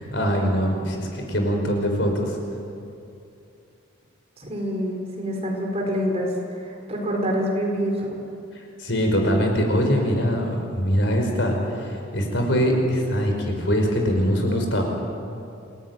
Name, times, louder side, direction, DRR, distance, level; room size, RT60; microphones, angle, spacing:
voice 1, 0.0-2.4 8.6-14.9, equal, 60° left, 2 dB, 5.2 m, -23 dB
voice 2, 4.4-8.2, equal, 30° right, 0 dB, 5.1 m, -26 dB
28.0 x 18.0 x 9.6 m, 2.6 s
head